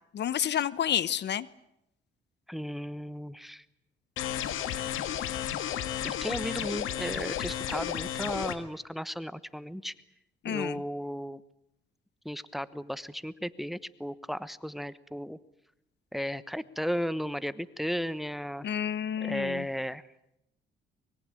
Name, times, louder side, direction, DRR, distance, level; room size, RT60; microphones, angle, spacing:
voice 1, 0.1-1.5 10.4-10.8 18.6-19.6, left 9 dB, 60° left, 18 dB, 0.9 m, -30 dB
voice 2, 2.5-3.6 6.0-9.9 10.5-11.4 12.2-15.4 16.1-18.7 19.2-20.0, equal, ahead, 16 dB, 1.1 m, -35 dB
sound 1, 4.2-8.6, left 11 dB, 90° left, 1.9 m, -33 dB
24.5 x 22.0 x 9.0 m, 0.83 s
cardioid pair, 90°, 20 cm